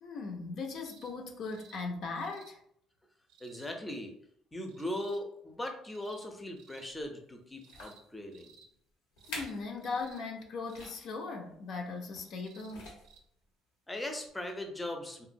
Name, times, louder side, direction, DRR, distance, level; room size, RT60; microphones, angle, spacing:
voice 1, 0.0-2.6 9.3-12.9, left 4 dB, 60° left, 0.5 m, -38 dB
sound 1, 0.8-1.1 1.4-1.8 2.2-2.5 3.3-3.7 4.7-5.2 5.8-6.3 6.6-6.9 7.6-8.0 8.3-8.7 9.2-9.5 9.8-10.2 10.7-11.0 12.2-12.7 13.0-13.2 14.3-14.4, right 6 dB, 80° right, 0.4 m, -58 dB
voice 2, 3.4-4.1 4.5-8.5 13.9-15.3, left 1 dB, 15° left, 0.6 m, -39 dB
sound 2, 6.9-7.1 7.6-8.0 8.7-8.8 9.1-9.7 10.0-10.1 10.7-11.1 12.1-12.4 12.7-13.2 13.9-14.0, left 2 dB, 90° left, 0.9 m, -46 dB
2.9 x 2.5 x 2.6 m
supercardioid pair, 80°, 0 cm